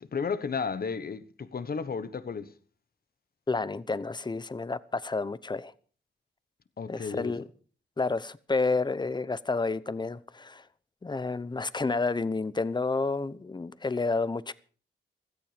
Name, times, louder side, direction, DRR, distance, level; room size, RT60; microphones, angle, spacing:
voice 1, 0.0-2.5 6.8-7.4, left 5 dB, 50° left, 1.2 m, -33 dB
voice 2, 3.5-5.7 6.9-7.4 8.0-10.6 11.0-14.5, left 3 dB, 25° left, 0.8 m, -30 dB
16.0 x 14.0 x 5.1 m
cardioid pair, 90°, 19 cm